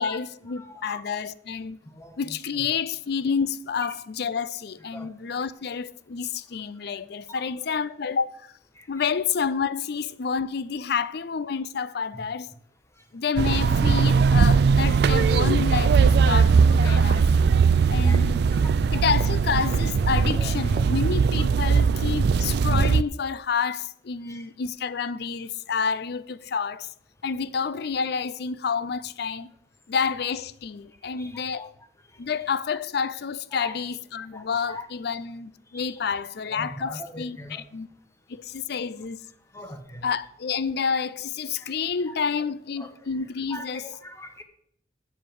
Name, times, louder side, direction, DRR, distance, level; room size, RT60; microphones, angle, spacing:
voice 1, 0.0-1.8 2.2-8.3 8.9-12.5 13.1-17.2 17.9-18.4 18.9-26.9 27.2-29.5 29.9-31.7 32.2-37.9 38.3-39.2 40.0-43.8, left 6 dB, 60° left, 0.5 m, -29 dB
voice 2, 0.6-1.0 1.9-2.7 3.8-3.9 4.9-5.1 7.4-7.5 8.8-8.9 12.1-12.2 16.8-17.2 17.8-18.2 18.5-19.0 20.3-20.9 21.5-21.6 24.2-24.4 31.2-31.7 33.5-33.8 34.3-34.9 35.7-36.0 36.5-37.6 39.5-40.0 41.6-41.7 42.8-43.0 43.5-44.4, left 1 dB, 15° left, 1.1 m, -42 dB
sound 1, 13.4-23.0, right 5 dB, 60° right, 0.3 m, -20 dB
7.8 x 7.3 x 7.6 m
head